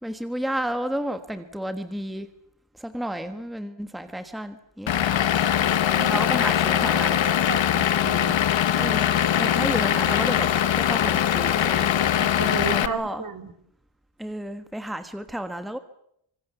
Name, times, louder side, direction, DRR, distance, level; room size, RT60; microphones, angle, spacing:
voice 1, 0.0-2.3 2.8-4.9 6.1-7.2 8.8-10.5 10.7-11.9 12.7-13.2 14.2-15.8, right 1 dB, ahead, 9 dB, 1.4 m, -31 dB
Vehicle / Engine, 4.9-12.9, left 10 dB, 75° left, 1.4 m, -22 dB
voice 2, 6.7-7.0 7.5-8.4 12.2-13.5, right 5 dB, 45° right, 8 dB, 2.6 m, -33 dB
27.5 x 25.5 x 7.0 m, 0.73 s
wide cardioid pair, 145°, 46 cm